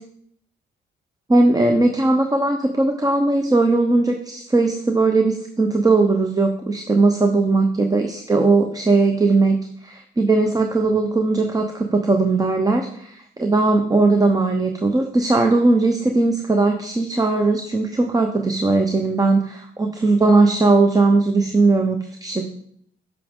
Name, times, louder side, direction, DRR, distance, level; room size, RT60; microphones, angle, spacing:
voice 1, 1.3-22.4, right 3 dB, 20° right, 4 dB, 0.8 m, -18 dB
9.6 x 6.1 x 3.7 m, 0.67 s
cardioid pair, 90°, 20 cm